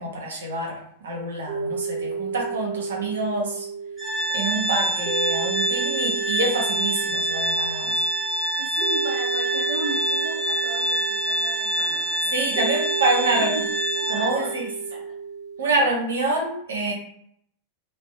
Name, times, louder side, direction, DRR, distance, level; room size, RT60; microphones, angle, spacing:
voice 1, 0.0-3.7 4.3-8.0 12.3-13.6 14.1-14.7 15.6-16.9, right 2 dB, 65° right, 0 dB, 0.7 m, -26 dB
sound 1, 1.5-15.7, right 5 dB, 30° right, 1.0 m, -32 dB
Organ, 4.0-14.6, right 1 dB, 10° left, 0.9 m, -26 dB
voice 2, 8.6-12.6 13.2-13.7 13.9-14.6 14.9-15.1 15.7-15.9, right 1 dB, 85° left, -8 dB, 0.7 m, -36 dB
2.6 x 2.2 x 2.4 m, 0.69 s
figure-of-eight pair, 90°, 0 cm